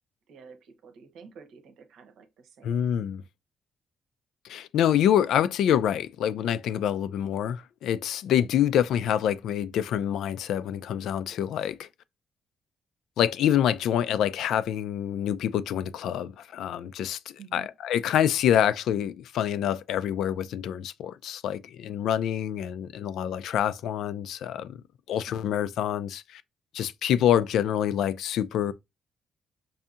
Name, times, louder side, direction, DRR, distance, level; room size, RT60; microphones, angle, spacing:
voice 1, 0.3-2.9 17.4-17.7, right 6 dB, 85° right, 0.9 m, -50 dB
voice 2, 2.6-3.2 4.4-11.9 13.2-24.8 25.1-26.4 26.7-28.7, left 10 dB, 90° left, 0.3 m, -26 dB
5.5 x 2.7 x 2.4 m
cardioid pair, 145°, 0 cm